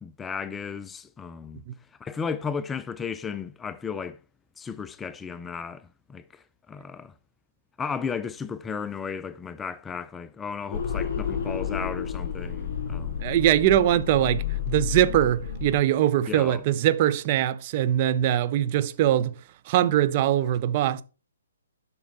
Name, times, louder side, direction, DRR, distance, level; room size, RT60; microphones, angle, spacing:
voice 1, 0.0-1.6 2.0-4.2 4.6-7.1 7.8-13.2 16.3-16.7, left 6 dB, 10° left, 0.3 m, -34 dB
sound 1, 10.7-15.7, left 8 dB, 50° left, 2.7 m, -31 dB
voice 2, 13.2-19.3 19.7-21.0, right 12 dB, 40° right, 0.5 m, -22 dB
7.8 x 5.9 x 4.1 m
hypercardioid pair, 140°, 0 cm